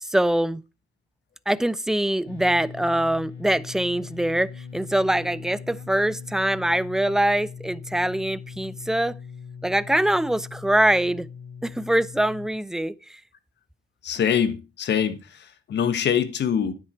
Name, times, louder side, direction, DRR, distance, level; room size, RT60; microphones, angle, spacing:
voice 1, 0.1-0.6 1.5-9.2 9.6-11.3 11.6-13.2, right 1 dB, ahead, 0.5 m, -23 dB
sound 1, 2.3-12.5, left 6 dB, 80° left, 4.6 m, -40 dB
voice 2, 14.0-15.2 15.7-16.7, left 8 dB, 60° left, 1.4 m, -23 dB
9.7 x 8.3 x 4.5 m
cardioid pair, 90°, 20 cm